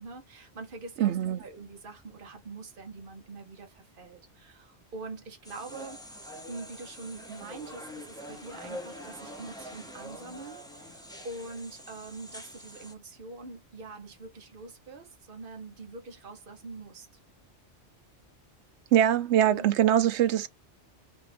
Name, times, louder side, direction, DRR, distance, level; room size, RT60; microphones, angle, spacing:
voice 1, 0.0-17.1 19.5-19.9, right 3 dB, 50° right, 1.2 m, -44 dB
voice 2, 1.0-1.4 18.9-20.5, right 11 dB, 75° right, 0.9 m, -23 dB
sound 1, 5.4-12.9, equal, 5° left, 0.8 m, -45 dB
4.9 x 2.5 x 3.4 m
omnidirectional pair, 1.2 m